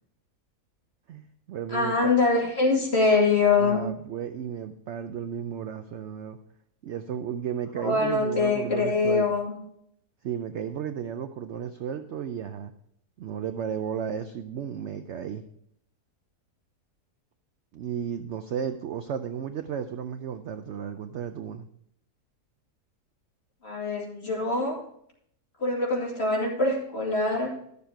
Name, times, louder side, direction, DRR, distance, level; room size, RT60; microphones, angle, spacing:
voice 1, 1.1-2.1 3.6-6.4 6.8-9.3 10.2-12.7 13.2-15.4 17.7-21.7, right 8 dB, 70° right, 8 dB, 0.7 m, -34 dB
voice 2, 1.7-3.8 7.8-9.6 23.6-24.8 25.6-27.5, left 3 dB, 40° left, -3 dB, 2.8 m, -24 dB
12.0 x 6.9 x 4.5 m, 0.69 s
omnidirectional pair, 1.7 m